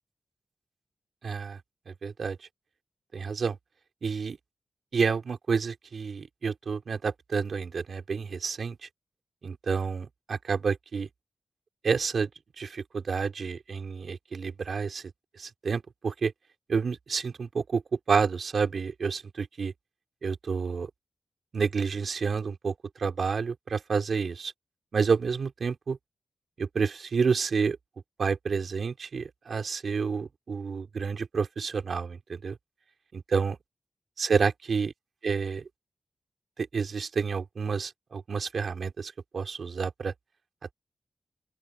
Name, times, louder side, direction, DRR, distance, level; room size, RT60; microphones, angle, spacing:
voice 1, 1.2-1.6 1.9-2.4 3.1-3.6 4.0-4.4 4.9-8.9 9.4-11.1 11.8-12.3 12.6-15.0 15.4-16.3 16.7-17.8 18.1-19.7 20.2-20.9 21.5-24.5 24.9-26.0 26.6-27.8 28.2-32.6 33.1-33.6 34.2-34.9 35.2-35.6 36.6-40.1, right 5 dB, 55° right, 3.7 m, -29 dB
open air
wide cardioid pair, 180°, 0 cm